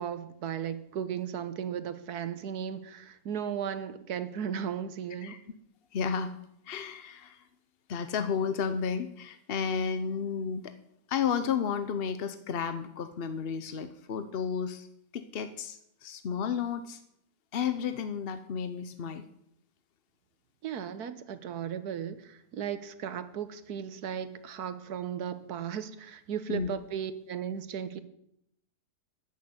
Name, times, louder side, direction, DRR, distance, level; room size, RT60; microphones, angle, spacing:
voice 1, 0.0-5.4 20.6-28.0, right 8 dB, 70° right, 12 dB, 1.4 m, -36 dB
voice 2, 5.9-6.3 6.7-7.4 7.9-10.7 11.1-14.9 15.1-17.0 17.5-19.2 26.5-26.7, left 7 dB, 55° left, 10 dB, 0.7 m, -32 dB
14.0 x 6.6 x 9.5 m, 0.77 s
omnidirectional pair, 1.8 m